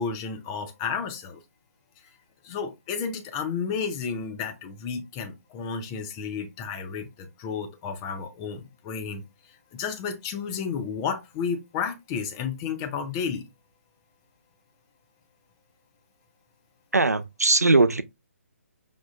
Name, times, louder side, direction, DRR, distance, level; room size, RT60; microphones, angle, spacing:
voice 1, 0.0-1.4 2.4-9.2 9.7-13.4, left 6 dB, 20° left, 0.4 m, -32 dB
voice 2, 16.9-18.0, right 3 dB, 85° right, 0.4 m, -20 dB
5.0 x 2.4 x 2.3 m
figure-of-eight pair, 140°, 8 cm